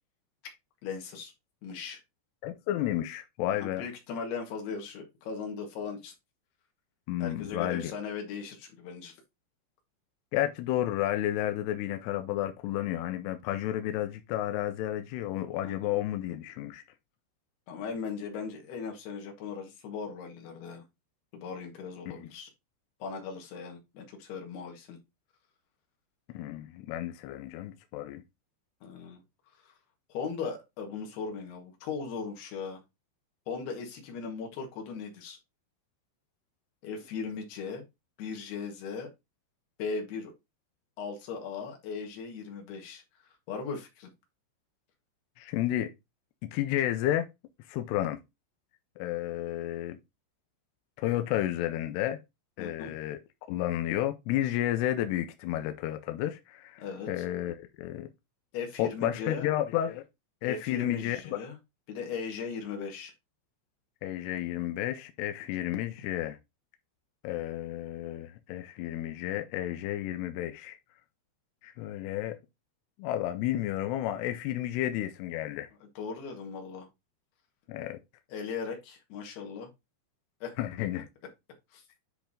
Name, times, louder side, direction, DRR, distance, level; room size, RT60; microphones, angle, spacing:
voice 1, 0.8-1.3 1.6-2.0 3.5-6.1 7.2-9.1 15.6-16.0 17.7-20.8 21.3-22.5 23.0-25.0 28.8-29.2 29.6-29.7 30.1-32.8 33.5-35.4 36.8-37.8 38.2-39.1 39.8-40.3 41.0-43.0 43.5-44.1 52.6-52.9 56.8-57.2 58.5-59.5 60.4-61.6 61.9-63.1 75.8-76.9 78.3-79.7 80.4-80.6 81.7-81.8, left 5 dB, 65° left, 3.5 m, -38 dB
voice 2, 2.4-3.8 7.1-7.9 10.3-16.8 22.2-22.3 26.3-28.2 45.4-45.9 46.4-47.3 47.7-48.2 49.0-50.0 51.0-52.2 52.6-53.2 53.5-58.1 58.8-60.0 60.4-61.4 64.0-66.4 67.2-70.8 71.6-72.4 73.0-75.7 77.7-78.0 80.6-81.1, left 13 dB, 85° left, 2.4 m, -31 dB
10.5 x 3.5 x 3.7 m
omnidirectional pair, 5.3 m